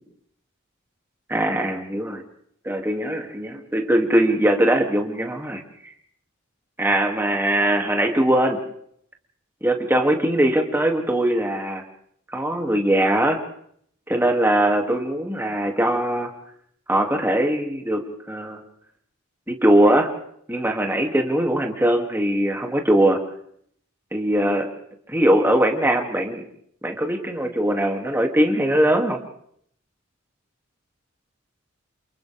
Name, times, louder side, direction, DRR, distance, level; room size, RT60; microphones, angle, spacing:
voice 1, 1.3-2.2 2.6-5.6 6.8-8.6 9.6-11.8 12.3-13.4 14.1-16.3 16.9-18.0 18.3-18.6 19.5-20.1 20.5-23.2 24.1-24.7 25.1-26.4 26.8-29.2, right 1 dB, 10° right, 2 dB, 2.5 m, -21 dB
29.0 x 29.0 x 3.5 m, 0.67 s
head